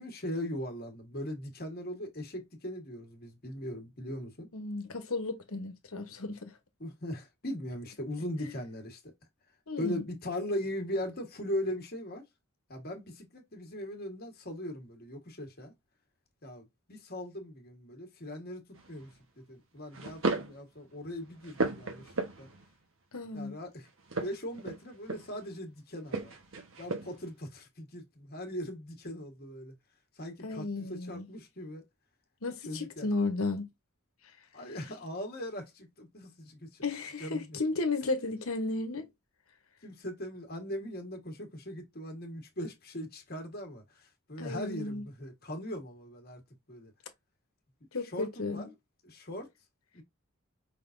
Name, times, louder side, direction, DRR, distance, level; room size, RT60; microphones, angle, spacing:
voice 1, 0.0-4.5 6.8-9.1 9.8-12.2 12.7-15.7 16.4-19.1 19.5-22.1 22.4-22.5 23.3-23.9 24.1-26.3 26.8-29.7 30.2-31.8 32.6-33.1 34.5-36.8 37.2-37.6 39.8-46.4 46.7-46.9 48.0-48.7 49.0-49.5 49.9-50.0, left 1 dB, 45° left, 1.5 m, -39 dB
voice 2, 4.5-6.5 8.4-8.5 9.7-10.0 23.1-23.6 30.4-31.3 32.4-33.7 36.8-39.1 44.4-45.0 47.9-48.7, left 3 dB, 85° left, 1.1 m, -34 dB
sound 1, 18.7-19.1 19.9-20.6 21.0-22.7 24.0-25.5 26.1-27.3, right 3 dB, 70° right, 1.2 m, -35 dB
5.4 x 3.7 x 2.6 m
head